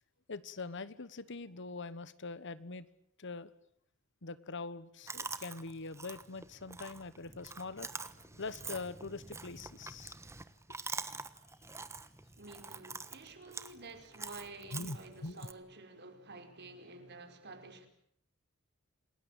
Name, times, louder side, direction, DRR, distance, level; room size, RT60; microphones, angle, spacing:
voice 1, 0.3-2.9 3.2-3.5 4.2-10.1 14.7-15.0 15.2-15.5, left 3 dB, 60° left, 1.2 m, -43 dB
Chewing mastication, 5.1-15.5, right 4 dB, 15° right, 1.2 m, -46 dB
voice 2, 12.4-17.9, right 3 dB, 55° right, 4.8 m, -50 dB
28.5 x 19.5 x 9.0 m
head